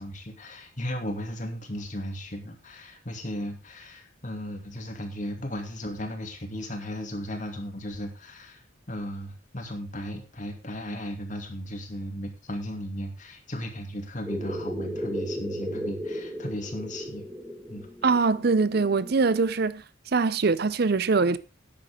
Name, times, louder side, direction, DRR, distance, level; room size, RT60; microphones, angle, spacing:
voice 1, 0.0-8.6 8.9-17.3 17.7-17.9, equal, 40° left, 2.6 m, -36 dB
sound 1, 14.2-19.4, equal, 5° right, 1.5 m, -35 dB
voice 2, 18.0-19.8 20.1-21.4, right 4 dB, 50° right, 0.5 m, -23 dB
13.0 x 10.0 x 3.7 m
head